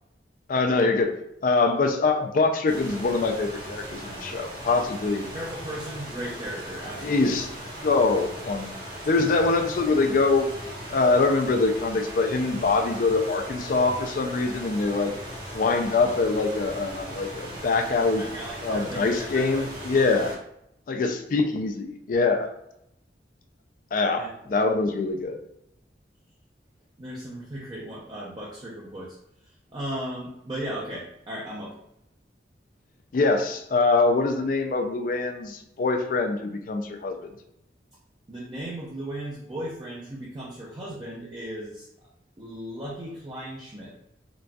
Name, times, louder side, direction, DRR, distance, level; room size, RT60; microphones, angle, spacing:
voice 1, 0.5-1.1 1.4-5.3 7.0-7.5 7.8-8.8 9.1-10.5 10.9-15.1 15.5-18.3 18.6-20.3 20.9-22.5 23.9-25.4 33.1-37.2, left 3 dB, 50° left, 5 dB, 0.4 m, -24 dB
sound 1, 2.7-20.4, equal, 55° right, 1.4 m, -38 dB
voice 2, 5.3-7.4 18.1-20.3 24.1-24.5 27.0-29.2 29.7-31.8 38.3-41.9 42.4-43.9, right 1 dB, 25° right, -5 dB, 0.5 m, -36 dB
3.9 x 2.3 x 2.3 m, 0.79 s
head